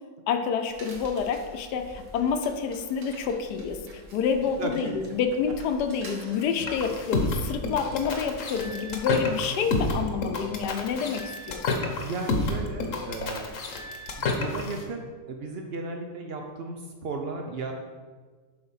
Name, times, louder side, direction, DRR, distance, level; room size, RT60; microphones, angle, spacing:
voice 1, 0.3-11.6, left 6 dB, 75° left, 7 dB, 1.2 m, -28 dB
sound 1, 0.7-8.7, right 1 dB, 50° right, 1.5 m, -47 dB
voice 2, 4.6-5.1 6.3-6.5 12.0-13.5 14.2-17.7, right 3 dB, 80° right, 3 dB, 0.5 m, -35 dB
sound 2, 6.6-14.8, left 3 dB, 55° left, 1.1 m, -29 dB
7.8 x 4.0 x 5.6 m, 1.5 s
omnidirectional pair, 1.9 m